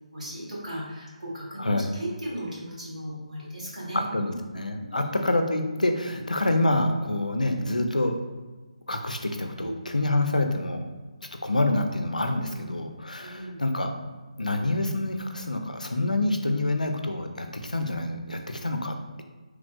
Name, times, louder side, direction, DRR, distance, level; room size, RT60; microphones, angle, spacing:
voice 1, 0.1-4.3 4.8-5.2 9.6-9.8 12.5-12.6 13.2-13.6, equal, 75° right, -6 dB, 1.4 m, -37 dB
voice 2, 1.6-1.9 3.9-8.2 8.9-10.9 11.4-13.9 14.4-19.2, left 2 dB, 90° left, 6 dB, 0.4 m, -27 dB
3.1 x 2.4 x 2.2 m, 1.3 s
figure-of-eight pair, 150°, 4 cm